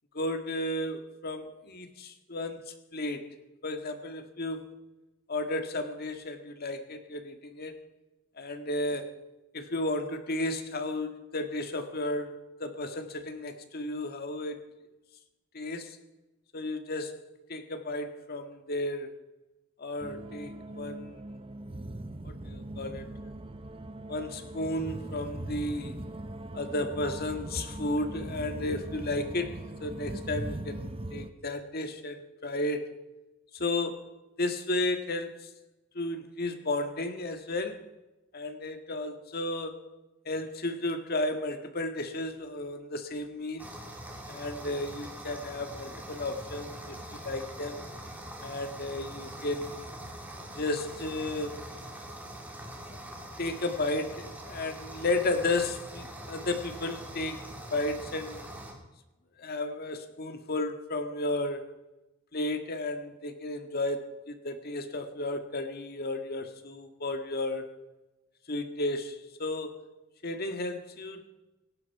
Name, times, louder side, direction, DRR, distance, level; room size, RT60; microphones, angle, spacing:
voice 1, 0.1-3.3 3.6-4.7 5.3-7.9 8.4-9.1 9.5-14.6 15.5-16.0 16.5-17.2 17.5-19.2 19.8-21.2 22.2-23.1 24.1-26.0 26.5-32.9 33.5-35.6 36.0-37.9 38.3-39.9 40.3-43.7 44.3-47.0 47.2-47.8 48.4-49.9 50.5-51.6 52.9-53.0 53.4-58.5 59.4-61.6 62.3-67.7 68.5-69.9 70.2-71.3, left 2 dB, 50° left, 7 dB, 1.7 m, -33 dB
sound 1, 20.0-31.3, right 1 dB, 30° right, 0.9 m, -40 dB
sound 2, 43.6-58.7, right 1 dB, 10° right, 3.4 m, -43 dB
17.5 x 17.5 x 4.7 m, 1.0 s
head